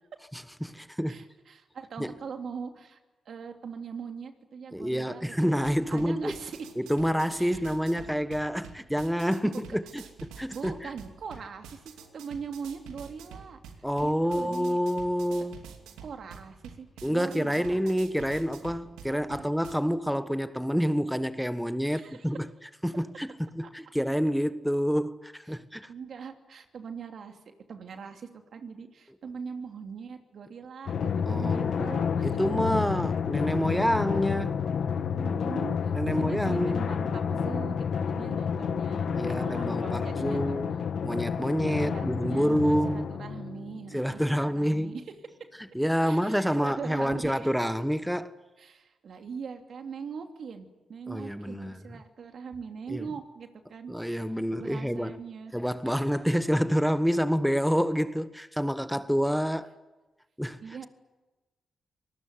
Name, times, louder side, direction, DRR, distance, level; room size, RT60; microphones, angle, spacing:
voice 1, 0.3-1.3 2.0-2.1 4.7-6.4 6.8-10.9 13.8-15.6 17.0-22.5 22.8-25.9 31.2-34.6 35.9-36.8 39.2-40.8 41.0-43.1 43.9-45.0 45.7-48.3 51.1-51.8 52.9-53.1 53.9-55.2 55.5-59.7 60.4-60.6, equal, ahead, 1.3 m, -28 dB
voice 2, 1.1-3.0 3.2-5.5 5.9-6.7 7.4-7.6 9.4-9.8 10.5-14.8 16.0-17.8 19.1-19.4 21.8-22.3 25.9-32.4 35.1-40.6 41.7-45.4 46.0-47.6 48.6-54.1 54.6-55.6 55.9-56.0 60.6-60.9, right 6 dB, 65° right, 2.9 m, -41 dB
sound 1, 5.6-19.7, right 6 dB, 90° right, 2.5 m, -48 dB
Drum, 30.9-43.9, left 7 dB, 65° left, 1.4 m, -30 dB
25.5 x 19.5 x 9.5 m
supercardioid pair, 50°, 0 cm